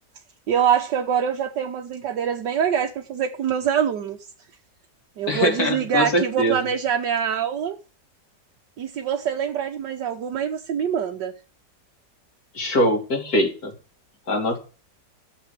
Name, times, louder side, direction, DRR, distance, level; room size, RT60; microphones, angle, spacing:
voice 1, 0.5-4.2 5.2-7.8 8.8-11.3, right 8 dB, 70° right, 1.6 m, -24 dB
voice 2, 5.3-6.6 12.5-13.7 14.3-14.6, equal, 55° left, 3.1 m, -22 dB
12.0 x 8.0 x 6.6 m
omnidirectional pair, 1.9 m